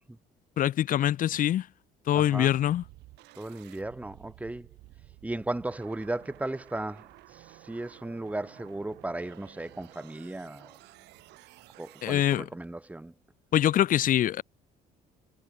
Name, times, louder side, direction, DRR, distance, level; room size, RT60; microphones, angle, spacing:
voice 1, 0.6-1.7 2.1-2.8 12.0-12.5 13.5-14.4, left 12 dB, 55° left, 0.8 m, -24 dB
voice 2, 2.1-2.5 3.4-4.7 5.2-7.1 7.3-10.7 11.8-13.1, right 2 dB, 10° right, 2.5 m, -36 dB
sound 1, 2.5-12.4, right 20 dB, 90° right, 6.8 m, -53 dB
cardioid pair, 110°, 17 cm